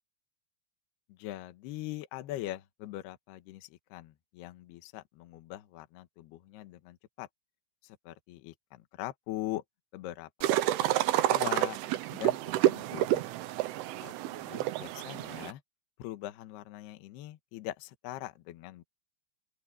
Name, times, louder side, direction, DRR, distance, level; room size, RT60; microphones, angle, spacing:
voice 1, 1.1-7.3 7.8-9.6 9.9-11.8 12.1-12.4 12.6-13.3 14.0-15.6 16.0-18.8, left 15 dB, 70° left, 2.9 m, -42 dB
sound 1, 10.4-15.5, right 14 dB, 85° right, 3.5 m, -29 dB
open air
omnidirectional pair, 5.6 m